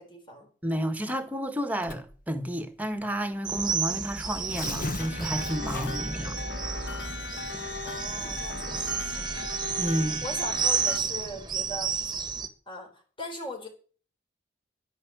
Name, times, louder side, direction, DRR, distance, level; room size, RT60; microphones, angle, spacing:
voice 1, 0.0-0.5 5.7-6.0 7.8-9.3 10.2-11.9 12.7-13.7, left 1 dB, 30° left, 4.2 m, -39 dB
voice 2, 0.6-7.1 9.8-10.2, equal, 10° right, 1.7 m, -31 dB
Tearing, 1.8-2.2 3.1-3.2 3.5-3.6 4.3-6.2, left 2 dB, 50° left, 1.3 m, -36 dB
sound 1, 3.4-12.5, right 5 dB, 25° right, 1.4 m, -31 dB
sound 2, 5.0-11.0, left 3 dB, 75° left, 1.7 m, -38 dB
11.0 x 10.5 x 8.0 m
head